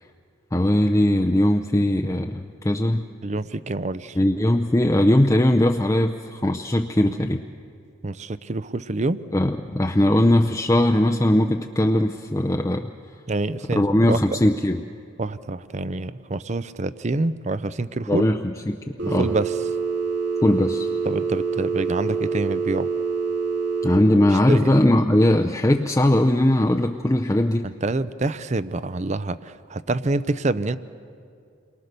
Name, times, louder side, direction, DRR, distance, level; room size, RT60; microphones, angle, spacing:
voice 1, 0.5-3.1 4.2-7.4 9.3-12.9 13.7-14.8 18.1-18.4 18.7-18.8 19.1-19.3 20.4-20.9 23.8-27.7, left 1 dB, 15° left, 3 dB, 0.6 m, -19 dB
voice 2, 3.2-4.2 8.0-9.2 13.3-13.8 14.1-14.4 15.2-18.3 19.0-19.6 21.1-22.9 24.3-24.7 27.6-30.8, right 2 dB, 35° right, 15 dB, 0.5 m, -27 dB
Telephone, 19.0-24.0, right 5 dB, 75° right, 3.9 m, -26 dB
28.5 x 23.0 x 6.7 m, 2.4 s
head